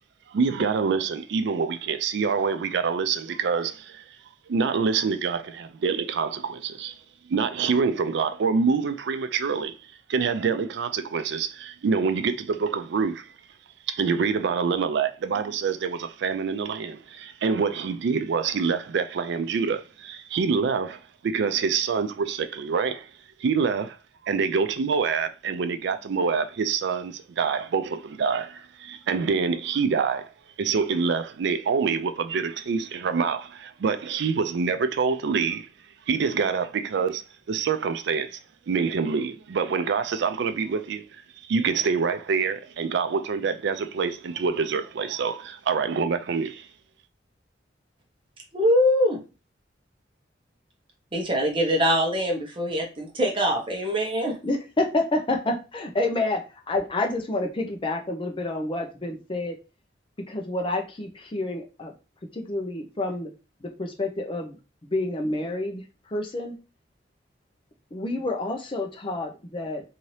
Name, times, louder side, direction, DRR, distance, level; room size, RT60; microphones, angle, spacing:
voice 1, 0.3-4.0 4.5-7.0 7.3-9.8 10.1-13.3 13.9-23.1 23.4-24.0 24.2-30.3 30.6-35.7 36.1-37.2 37.5-38.4 38.7-46.7, right 5 dB, 65° right, 0.4 m, -26 dB
voice 2, 48.5-49.2 51.1-54.4, equal, 30° right, 0.9 m, -23 dB
voice 3, 54.4-59.6 60.3-61.9 62.3-63.3 63.6-64.6 64.9-65.8 66.1-66.6 67.9-69.8, left 2 dB, 30° left, 0.6 m, -28 dB
2.8 x 2.7 x 3.1 m
head